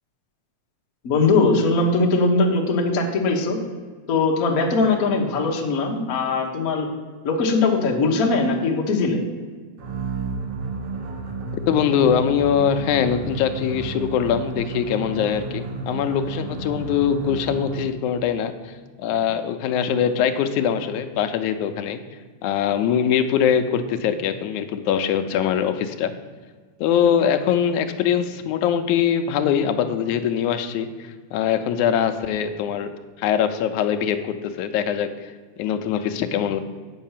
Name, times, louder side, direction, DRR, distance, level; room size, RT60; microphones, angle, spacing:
voice 1, 1.0-3.6 4.1-6.9 7.2-9.2, left 3 dB, 55° left, 0 dB, 0.9 m, -20 dB
sound 1, 9.8-18.0, right 3 dB, 60° right, 2.0 m, -32 dB
voice 2, 11.7-18.5 19.0-22.0 22.4-26.1 26.8-32.9 33.2-35.3 35.6-36.6, left 8 dB, 85° left, 9 dB, 2.1 m, -22 dB
8.3 x 5.7 x 7.3 m, 1.5 s
omnidirectional pair, 3.4 m